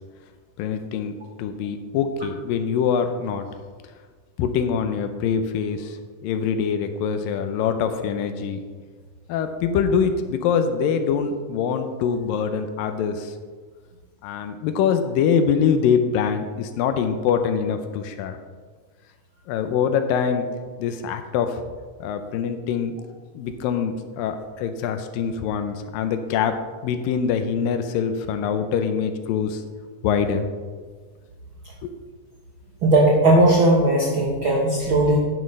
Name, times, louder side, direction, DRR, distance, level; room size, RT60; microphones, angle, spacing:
voice 1, 0.6-3.5 4.4-8.6 9.3-13.3 14.2-18.4 19.5-20.5 20.8-21.6 22.0-23.0 23.3-29.6 30.0-30.5 31.8-31.9, left 7 dB, 85° left, 8 dB, 2.4 m, -24 dB
voice 2, 32.8-35.2, right 1 dB, 70° right, -3 dB, 1.2 m, -17 dB
10.5 x 9.2 x 3.2 m, 1.5 s
omnidirectional pair, 4.0 m